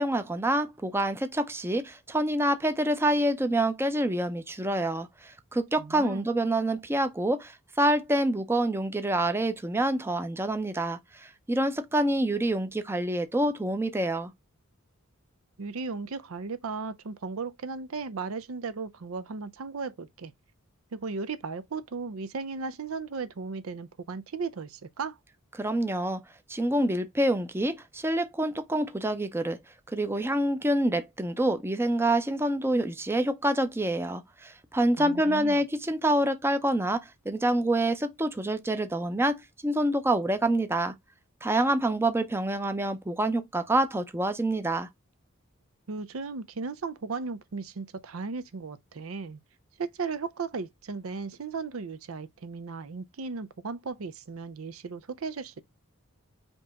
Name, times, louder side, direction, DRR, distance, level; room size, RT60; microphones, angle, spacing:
voice 1, 0.0-14.3 25.6-26.2 26.5-29.6 29.9-40.9 41.4-44.9, right 1 dB, 10° right, 0.5 m, -27 dB
voice 2, 5.8-6.3 15.6-20.3 20.9-25.2 35.0-35.6 45.9-49.4 49.8-55.6, right 4 dB, 80° right, 0.6 m, -36 dB
5.3 x 2.9 x 3.5 m
head